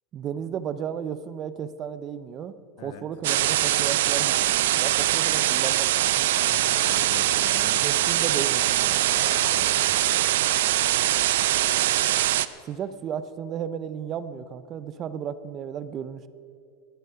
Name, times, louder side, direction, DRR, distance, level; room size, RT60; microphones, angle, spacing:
voice 1, 0.1-6.3 7.7-9.1 12.6-16.3, right 8 dB, 30° right, 14 dB, 0.6 m, -34 dB
sound 1, 3.2-12.5, right 14 dB, 80° right, 0.5 m, -22 dB
sound 2, 4.1-4.6 6.7-7.3 9.2-9.9 11.3-12.1, left 5 dB, 25° left, 0.9 m, -45 dB
voice 2, 6.4-8.1 9.1-9.9, left 5 dB, 70° left, 6 dB, 1.9 m, -42 dB
19.0 x 10.5 x 5.7 m, 2.4 s
supercardioid pair, 145°, 0 cm